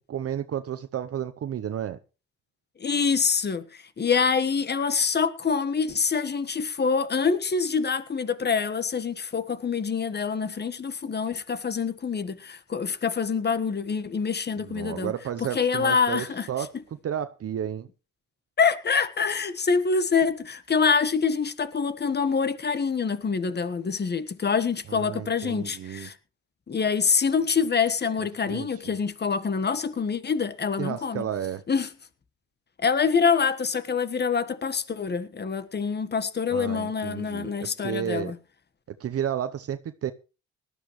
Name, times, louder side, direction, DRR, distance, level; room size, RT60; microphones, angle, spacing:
voice 1, 0.1-2.0 14.6-16.7 17.0-17.9 24.9-26.1 28.5-29.0 30.8-31.6 36.5-38.3 38.9-40.1, right 9 dB, 50° right, 0.8 m, -32 dB
voice 2, 2.8-15.1 15.4-16.5 18.6-26.1 26.7-31.2 31.7-31.9 32.8-38.3, left 5 dB, 35° left, 1.4 m, -25 dB
19.0 x 12.5 x 3.2 m
cardioid pair, 90°, 30 cm